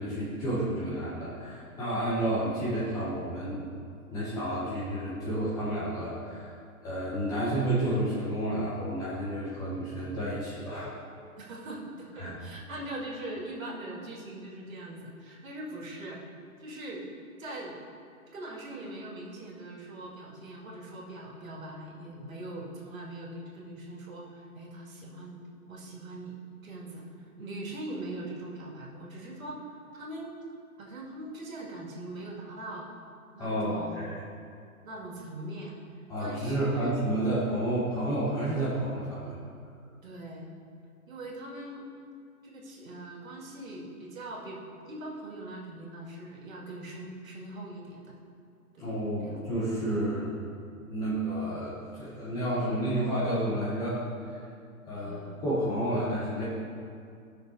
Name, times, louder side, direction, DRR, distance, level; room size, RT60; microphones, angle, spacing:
voice 1, 0.0-3.7 4.1-6.5 6.8-11.4 12.2-12.3 33.4-34.2 36.1-39.3 48.8-50.3 50.8-54.4 54.9-56.5, right 1 dB, 10° left, -8 dB, 0.6 m, -31 dB
voice 2, 11.4-16.2 16.6-17.0 17.4-17.7 18.3-25.4 25.7-26.3 26.6-29.6 29.9-30.3 30.8-32.9 33.3-34.2 34.8-37.0 40.0-40.5 41.1-41.9 42.4-44.6 44.9-48.1 48.7-48.9 49.2-49.4 54.9-55.4, right 1 dB, 65° right, -3 dB, 2.4 m, -41 dB
17.0 x 6.2 x 2.8 m, 2.3 s
hypercardioid pair, 140°, 44 cm